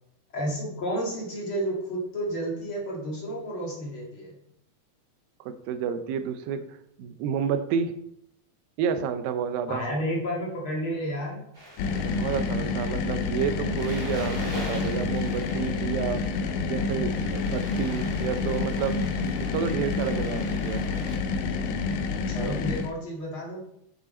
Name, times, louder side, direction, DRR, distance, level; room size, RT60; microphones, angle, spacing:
voice 1, 0.3-4.4 9.7-11.4 22.3-23.6, equal, 45° left, -3 dB, 2.2 m, -31 dB
voice 2, 5.4-6.7 7.0-8.0 8.8-9.9 11.9-16.2 16.7-19.0 19.4-20.8, right 7 dB, 80° right, 10 dB, 2.3 m, -30 dB
sound 1, 11.5-21.2, right 1 dB, 15° right, 2.1 m, -44 dB
sound 2, 11.8-22.9, left 4 dB, 75° left, 2.3 m, -28 dB
8.3 x 7.3 x 4.2 m, 0.74 s
omnidirectional pair, 4.3 m